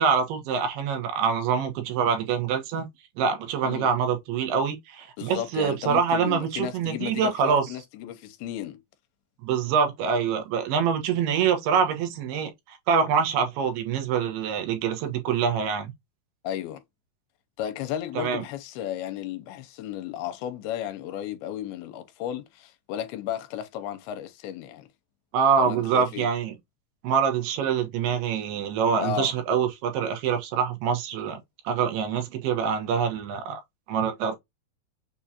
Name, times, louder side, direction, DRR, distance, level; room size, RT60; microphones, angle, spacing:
voice 1, 0.0-2.9 3.2-7.7 9.4-15.9 18.2-18.4 25.3-26.6 27.0-31.4 31.6-33.6 33.9-34.4, right 6 dB, 90° right, 3.2 m, -25 dB
voice 2, 5.2-8.8 16.4-16.8 17.6-24.9 25.6-26.3 29.0-29.3, left 11 dB, 85° left, 2.6 m, -34 dB
6.8 x 2.4 x 2.8 m
omnidirectional pair, 4.5 m